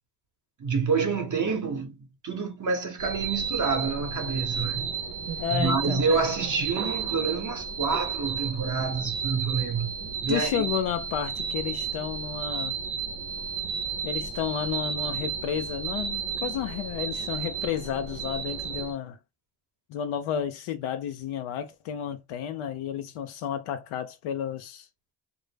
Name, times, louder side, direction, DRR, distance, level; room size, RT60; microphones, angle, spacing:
voice 1, 0.6-2.0 2.2-4.9 5.5-10.0 10.2-10.7, right 4 dB, 40° right, 0.9 m, -28 dB
sound 1, 3.0-18.9, right 7 dB, 75° right, 0.7 m, -33 dB
voice 2, 5.4-6.0 10.3-12.8 14.0-19.2 19.9-24.9, left 9 dB, 75° left, 0.6 m, -31 dB
2.0 x 2.0 x 3.3 m
supercardioid pair, 60°, 49 cm